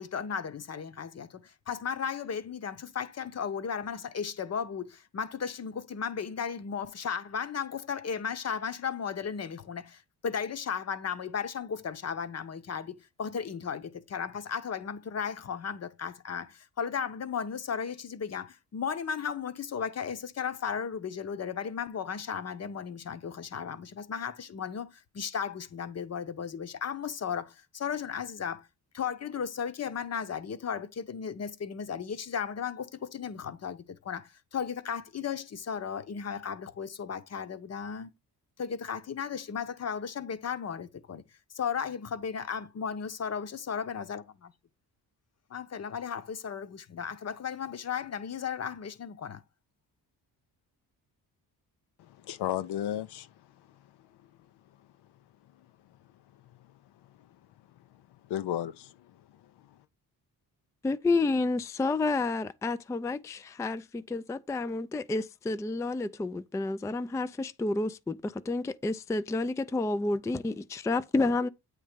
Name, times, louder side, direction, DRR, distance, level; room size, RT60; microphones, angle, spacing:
voice 1, 0.0-28.7 28.9-38.1 38.6-41.2 41.5-44.5 45.5-49.4, left 7 dB, 40° left, 0.9 m, -35 dB
voice 2, 52.0-53.3 58.3-59.2, left 11 dB, 80° left, 0.6 m, -33 dB
voice 3, 60.8-71.5, left 3 dB, 10° left, 0.4 m, -30 dB
8.5 x 3.3 x 5.0 m
cardioid pair, 75°, 39 cm